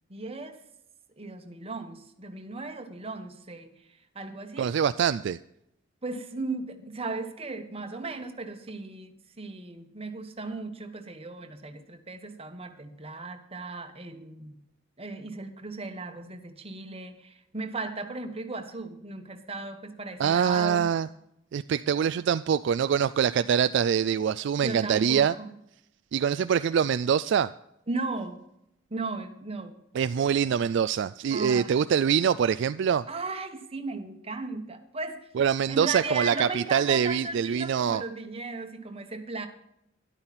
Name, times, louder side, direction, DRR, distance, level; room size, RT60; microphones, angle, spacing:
voice 1, 0.1-0.6 1.2-4.7 6.0-14.6 15.0-20.9 24.6-25.6 27.9-28.4 28.9-29.8 30.2-30.3 31.3-31.8 33.1-35.3 35.7-39.5, right 3 dB, 30° right, 6 dB, 1.3 m, -36 dB
voice 2, 4.6-5.4 20.2-21.1 21.5-25.3 26.1-27.5 30.0-33.1 35.4-38.0, right 7 dB, 60° right, 14 dB, 0.3 m, -24 dB
12.5 x 11.5 x 4.2 m, 0.79 s
head